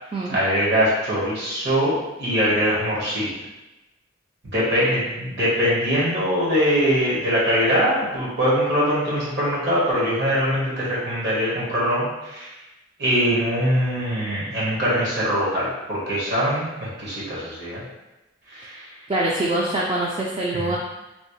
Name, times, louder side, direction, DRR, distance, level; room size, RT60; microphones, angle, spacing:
voice 1, 0.3-3.3 4.5-12.5 13.0-17.8 18.5-18.8 20.5-20.8, equal, 60° right, -7 dB, 1.3 m, -22 dB
voice 2, 19.1-20.8, right 1 dB, 30° right, -3 dB, 0.3 m, -24 dB
3.2 x 2.7 x 3.0 m, 1.0 s
head